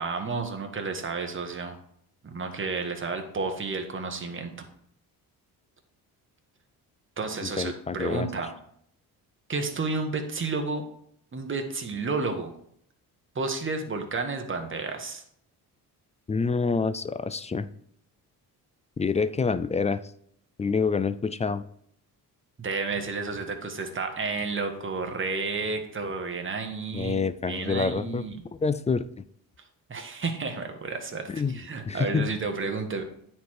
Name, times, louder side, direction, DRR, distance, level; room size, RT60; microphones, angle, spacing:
voice 1, 0.0-1.7 2.2-4.5 7.2-8.5 9.5-10.8 11.3-12.5 13.3-15.2 22.6-27.2 27.5-28.4 29.9-33.0, right 4 dB, 30° right, 4 dB, 1.4 m, -31 dB
voice 2, 7.4-8.3 16.3-17.7 19.0-20.0 20.6-21.6 26.9-28.2 28.5-29.0 31.3-31.6 31.9-32.3, left 5 dB, 20° left, 14 dB, 0.3 m, -27 dB
9.3 x 4.5 x 4.7 m, 0.68 s
cardioid pair, 85°, 40 cm